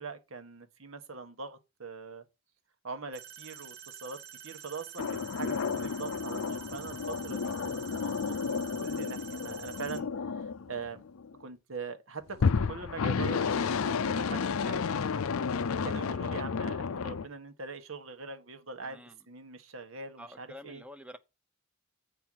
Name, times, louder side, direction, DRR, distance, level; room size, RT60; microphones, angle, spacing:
voice 1, 0.0-2.2 2.8-4.2 4.4-10.1 10.3-11.0 11.4-14.9 15.8-20.8, right 4 dB, 75° right, 1.3 m, -42 dB
sound 1, 3.1-10.0, right 9 dB, 55° right, 1.6 m, -48 dB
sound 2, 5.0-11.3 12.3-17.3, left 5 dB, 90° left, 0.5 m, -31 dB
voice 2, 18.8-19.2 20.2-21.2, left 1 dB, 5° right, 0.8 m, -48 dB
8.9 x 4.6 x 6.2 m
head